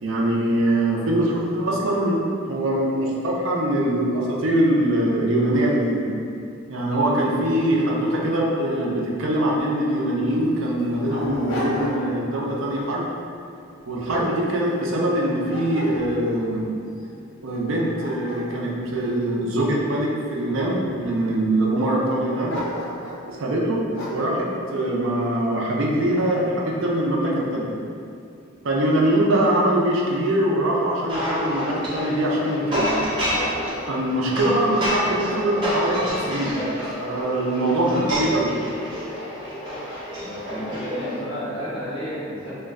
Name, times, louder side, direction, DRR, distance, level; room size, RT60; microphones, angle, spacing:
voice 1, 0.0-6.0 6.7-13.1 13.9-16.7 17.4-22.5 23.3-27.7 28.6-32.9 33.9-36.6 37.0-38.5, right 1 dB, 65° right, -3 dB, 0.5 m, -23 dB
Dog, 9.9-10.0 10.6-12.2 12.7-13.0 13.6-15.1 15.5-16.4 17.0-17.1 17.6-19.9 20.5-21.2 22.5-23.3 23.9-24.3, left 1 dB, 70° left, 0.7 m, -34 dB
sound 1, 31.1-41.1, equal, 20° right, 0.8 m, -29 dB
voice 2, 34.3-35.1 40.2-42.5, equal, 25° left, -13 dB, 1.2 m, -32 dB
3.0 x 2.2 x 3.5 m, 2.5 s
head